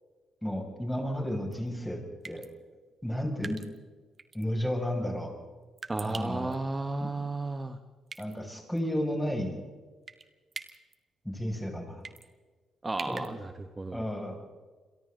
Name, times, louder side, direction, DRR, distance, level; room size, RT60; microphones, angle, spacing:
voice 1, 0.4-2.5 3.0-3.6 4.3-5.3 6.0-6.5 8.2-9.6 11.2-12.0 13.1-13.2 13.9-14.4, equal, 5° left, 2 dB, 6.7 m, -32 dB
sound 1, 1.5-1.7 2.2-2.5 3.4-3.8 4.2-4.4 5.8-6.5 8.1-8.4 8.8-8.9 10.1-10.3 10.5-10.9 12.0-12.3 13.0-13.3, right 5 dB, 40° right, 2.1 m, -42 dB
voice 2, 5.9-7.8 12.8-14.0, right 2 dB, 20° right, 7 dB, 1.4 m, -33 dB
29.0 x 23.0 x 4.0 m, 1.4 s
cardioid pair, 90°, 0 cm